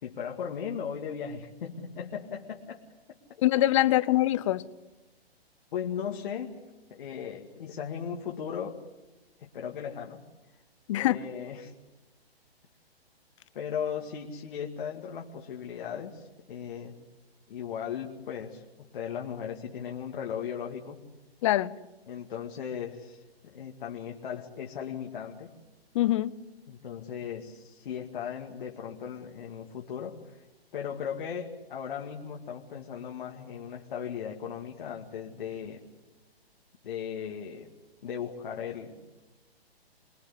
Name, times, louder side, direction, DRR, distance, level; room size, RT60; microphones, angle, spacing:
voice 1, 0.0-2.8 5.7-6.6 6.9-8.8 9.4-10.2 10.9-11.7 13.5-17.0 17.5-21.0 22.1-25.5 26.7-30.5 30.7-35.8 36.8-37.7 38.0-39.0, left 8 dB, 55° left, 2.2 m, -37 dB
voice 2, 3.4-4.7 10.9-11.2 21.4-21.7 25.9-26.4, left 15 dB, 30° left, 0.7 m, -24 dB
24.0 x 20.5 x 8.4 m
hypercardioid pair, 140°, 31 cm